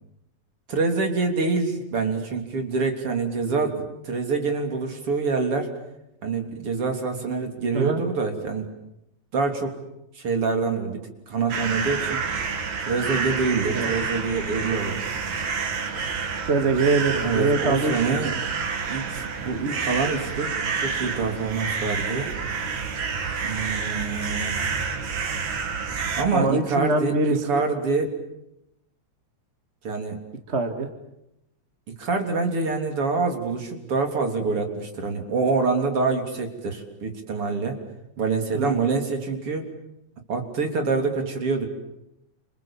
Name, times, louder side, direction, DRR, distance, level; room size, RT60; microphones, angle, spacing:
voice 1, 0.7-5.7 6.2-8.7 9.3-9.8 10.1-12.2 12.9-15.0 17.2-18.3 18.9-22.3 23.4-24.6 26.1-28.1 29.8-30.2 32.0-37.8 38.2-39.7 40.3-41.7, right 4 dB, 50° right, 4 dB, 4.1 m, -26 dB
sound 1, 11.5-26.2, right 5 dB, 70° right, 3.8 m, -29 dB
voice 2, 16.5-18.1 26.3-27.6 30.5-30.9 38.5-38.8, right 3 dB, 25° right, 6 dB, 1.9 m, -23 dB
29.5 x 28.0 x 7.4 m, 0.85 s
omnidirectional pair, 3.4 m